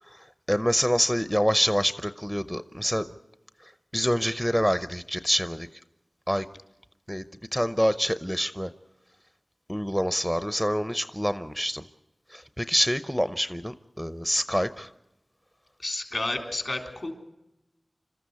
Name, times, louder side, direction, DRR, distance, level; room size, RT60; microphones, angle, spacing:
voice 1, 0.1-3.1 3.6-5.7 6.3-6.5 7.1-7.3 7.5-8.7 9.7-11.8 12.3-14.9, equal, 5° left, 12 dB, 0.7 m, -26 dB
voice 2, 15.8-17.1, left 2 dB, 60° left, 4 dB, 3.8 m, -31 dB
26.5 x 13.5 x 8.3 m, 0.95 s
wide cardioid pair, 45°, 0 cm